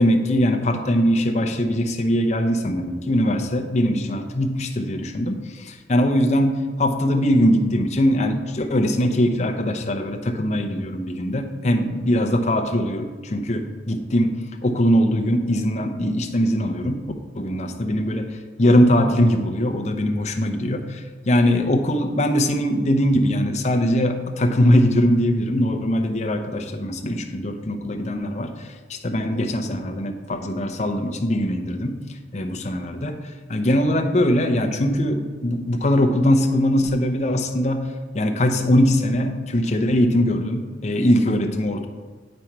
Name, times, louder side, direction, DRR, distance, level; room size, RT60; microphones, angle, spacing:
voice 1, 0.0-14.3 14.6-18.2 18.6-32.0 32.3-37.9 38.1-41.9, equal, 40° left, 4 dB, 0.7 m, -21 dB
8.6 x 5.2 x 4.5 m, 1.4 s
head